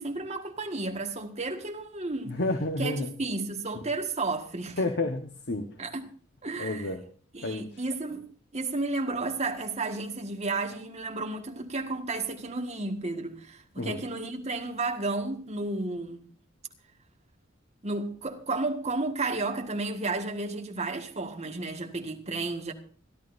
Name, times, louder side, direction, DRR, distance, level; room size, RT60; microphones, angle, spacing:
voice 1, 0.0-2.4 2.8-4.8 5.8-6.1 6.4-6.9 7.3-16.3 17.8-22.7, right 3 dB, 35° right, 1.7 m, -32 dB
voice 2, 2.3-3.1 4.8-5.7 6.6-7.0 7.4-7.8 13.8-14.0, left 2 dB, 55° left, 1.3 m, -30 dB
25.5 x 11.5 x 2.6 m
head